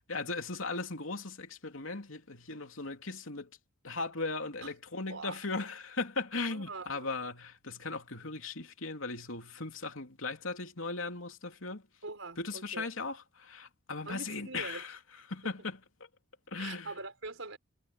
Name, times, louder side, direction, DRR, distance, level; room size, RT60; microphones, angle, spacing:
voice 1, 0.1-3.5 3.8-11.8 12.4-15.0 15.3-15.8 16.5-16.9, left 3 dB, 85° left, 3.0 m, -38 dB
voice 2, 5.1-5.4 6.5-7.1 12.0-12.9 14.1-14.8 15.4-15.5 16.6-17.6, right 3 dB, 80° right, 4.6 m, -43 dB
head